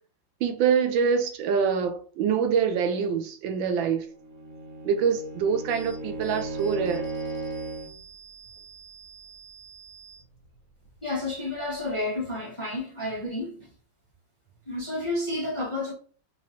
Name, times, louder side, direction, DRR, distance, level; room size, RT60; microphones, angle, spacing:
voice 1, 0.4-4.1 4.8-7.0, right 6 dB, 80° right, 1.3 m, -25 dB
Bowed string instrument, 4.1-8.0, right 2 dB, 65° right, 0.8 m, -35 dB
sound 1, 5.7-12.1, right 5 dB, 70° left, 1.8 m, -50 dB
voice 2, 11.0-13.7 14.7-15.9, left 2 dB, 25° left, 0.7 m, -30 dB
3.9 x 3.0 x 2.9 m
omnidirectional pair, 2.1 m